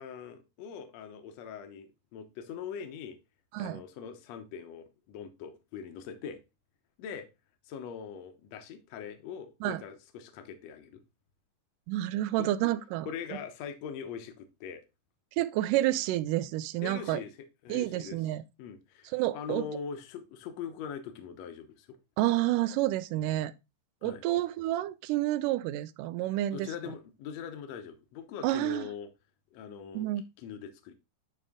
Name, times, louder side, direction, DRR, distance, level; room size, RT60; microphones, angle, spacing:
voice 1, 0.0-3.2 3.6-6.4 7.0-7.3 7.7-11.0 12.4-12.5 13.1-14.8 16.8-17.3 17.6-18.2 18.6-22.0 24.0-24.2 26.5-29.1 29.5-30.1 30.4-30.9, left 7 dB, 65° left, 1.9 m, -42 dB
voice 2, 11.9-13.1 15.4-17.2 17.7-18.4 19.1-19.7 22.2-23.5 24.0-26.7 28.4-28.9 29.9-30.2, right 15 dB, 80° right, 2.1 m, -29 dB
11.0 x 3.7 x 3.7 m
omnidirectional pair, 3.9 m